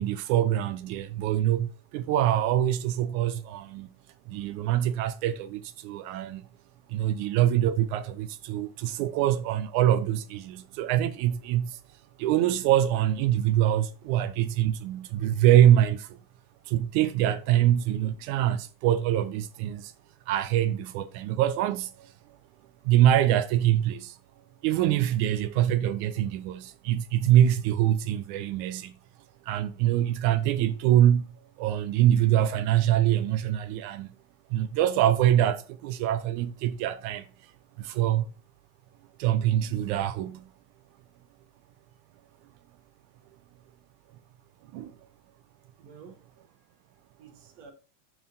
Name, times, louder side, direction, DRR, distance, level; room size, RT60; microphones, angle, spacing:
voice 1, 0.0-3.9 4.3-6.4 6.9-11.8 12.2-16.2 16.7-19.9 20.3-22.1 22.9-24.2 24.6-28.9 29.5-34.1 34.5-37.3 37.8-38.3 39.2-40.5 44.7-44.9, right 11 dB, 80° right, 1.9 m, -24 dB
voice 2, 45.8-47.7, right 6 dB, 65° right, 2.2 m, -53 dB
12.5 x 4.4 x 2.5 m
omnidirectional pair, 3.6 m